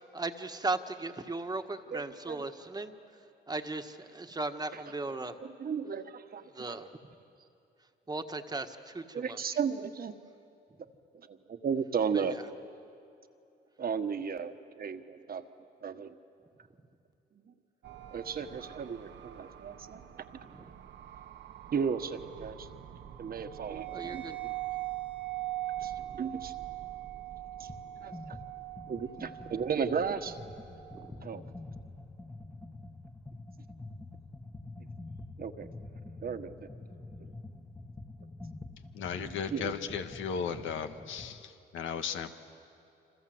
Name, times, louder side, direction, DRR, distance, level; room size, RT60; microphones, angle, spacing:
voice 1, 0.1-2.9 3.5-5.4 6.5-6.9 8.1-9.4 12.1-12.2 23.9-24.3 30.9-31.3, right 3 dB, 20° right, 7 dB, 1.5 m, -37 dB
voice 2, 1.9-2.5 4.7-4.8 5.4-6.8 9.1-10.1 11.1-12.4 13.8-15.5 15.8-16.2 17.3-17.5 18.1-20.3 21.7-22.7 23.2-24.5 25.8-26.5 27.6-27.7 28.0-28.4 28.9-30.4 31.2-31.4 35.4-35.7 36.2-36.7 39.1-39.7, right 6 dB, 50° right, 8 dB, 1.5 m, -35 dB
sound 1, 17.8-31.1, right 14 dB, 65° right, 1.4 m, -42 dB
sound 2, 27.7-27.9 28.1-41.4, left 2 dB, 10° left, 1.5 m, -47 dB
voice 3, 38.9-42.3, left 7 dB, 80° left, 7 dB, 1.6 m, -36 dB
27.5 x 26.0 x 7.9 m, 2.7 s
cardioid pair, 90°, 20 cm